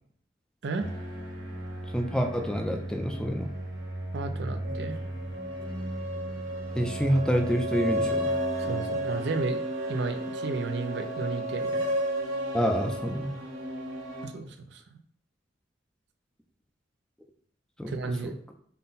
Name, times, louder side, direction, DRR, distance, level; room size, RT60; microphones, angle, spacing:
sound 1, 0.8-14.3, right 1 dB, 90° right, 1.4 m, -33 dB
voice 1, 1.9-3.5 6.7-8.3 12.5-13.4 17.8-18.3, equal, 5° left, 3 dB, 0.5 m, -28 dB
voice 2, 4.1-5.0 8.6-9.6 9.9-11.9 14.2-15.0 17.9-18.4, right 3 dB, 65° right, 6 dB, 0.6 m, -33 dB
5.6 x 2.2 x 4.0 m, 0.62 s
head